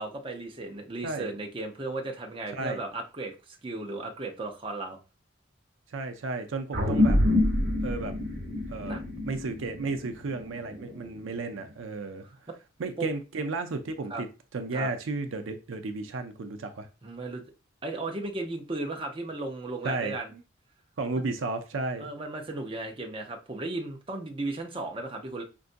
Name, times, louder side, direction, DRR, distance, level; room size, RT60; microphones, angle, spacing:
voice 1, 0.0-5.0 6.7-7.2 8.8-9.0 10.7-11.2 13.0-13.1 14.1-14.2 14.7-14.9 17.0-17.4 17.8-20.3 21.2-21.3 22.0-25.4, right 2 dB, 25° right, 0.6 m, -36 dB
voice 2, 5.9-7.2 7.8-8.1 8.7-9.0 9.2-12.3 12.8-14.3 14.5-16.9 19.8-20.4 21.0-22.1, right 3 dB, 80° right, 0.5 m, -33 dB
sound 1, 6.7-11.5, left 1 dB, 60° right, 1.2 m, -27 dB
5.3 x 2.5 x 2.5 m
head